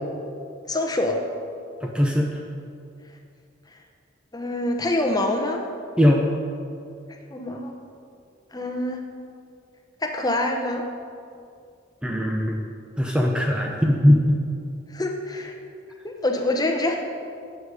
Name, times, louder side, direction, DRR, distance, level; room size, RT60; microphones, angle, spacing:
voice 1, 0.7-1.2 4.3-5.6 7.3-7.7 8.5-9.0 10.0-10.8 14.9-15.6 16.0-17.0, left 1 dB, 20° left, 3 dB, 0.9 m, -25 dB
voice 2, 1.8-2.3 6.0-6.2 12.0-12.6 13.0-14.4, equal, 5° right, 0 dB, 0.7 m, -20 dB
12.0 x 8.3 x 4.9 m, 2.4 s
head